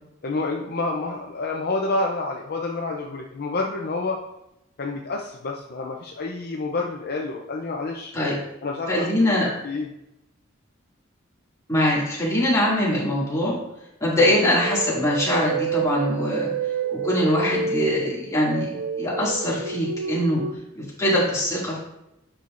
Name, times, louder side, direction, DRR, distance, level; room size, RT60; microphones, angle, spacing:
voice 1, 0.2-4.2 4.8-8.1 8.6-9.1 9.6-9.9, left 3 dB, 50° left, 0 dB, 0.6 m, -28 dB
voice 2, 8.9-9.5 11.7-13.6 14.0-16.5 17.0-18.7 19.0-20.4 20.7-21.8, left 1 dB, 15° left, -7 dB, 2.3 m, -22 dB
sound 1, 14.3-20.5, right 5 dB, 55° right, 0.4 m, -29 dB
8.8 x 5.6 x 2.6 m, 0.88 s
head